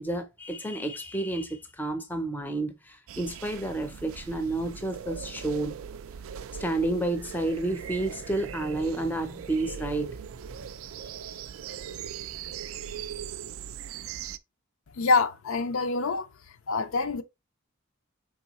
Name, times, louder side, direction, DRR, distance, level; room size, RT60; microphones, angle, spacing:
voice 1, 0.0-5.8 6.6-10.2 11.0-11.1, right 2 dB, 10° left, 0.5 m, -30 dB
sound 1, 3.1-14.4, right 7 dB, 75° right, 0.3 m, -40 dB
voice 2, 15.0-16.3 16.7-17.2, left 4 dB, 75° left, 0.5 m, -25 dB
4.6 x 3.6 x 2.9 m
head